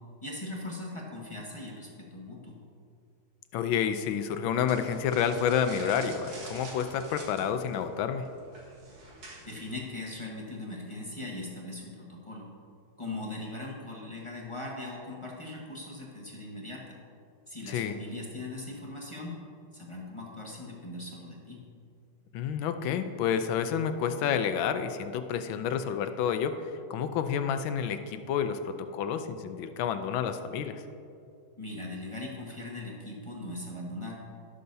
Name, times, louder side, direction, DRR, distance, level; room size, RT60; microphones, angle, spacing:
voice 1, 0.2-2.6 9.4-12.5 13.0-17.0 17.5-19.4 19.7-21.6 31.6-34.2, left 2 dB, 20° left, -3 dB, 1.0 m, -40 dB
voice 2, 3.5-8.3 17.7-18.0 22.3-30.8, left 8 dB, 75° left, 9 dB, 1.4 m, -29 dB
sound 1, 4.7-9.8, right 2 dB, 65° right, 2.5 m, -47 dB
20.0 x 6.7 x 2.7 m, 2.4 s
omnidirectional pair, 2.3 m